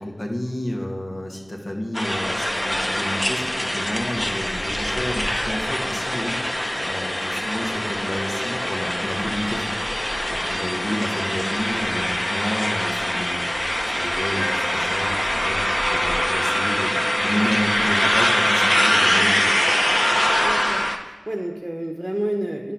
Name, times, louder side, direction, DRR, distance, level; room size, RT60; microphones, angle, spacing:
voice 1, 0.0-9.7 10.3-19.5, left 1 dB, 85° left, 0 dB, 1.1 m, -30 dB
sound 1, 1.9-21.0, left 1 dB, 30° left, 0.7 m, -23 dB
voice 2, 20.4-22.7, right 1 dB, 20° right, 2 dB, 0.7 m, -29 dB
9.8 x 3.8 x 5.7 m, 1.4 s
wide cardioid pair, 50°, 0 cm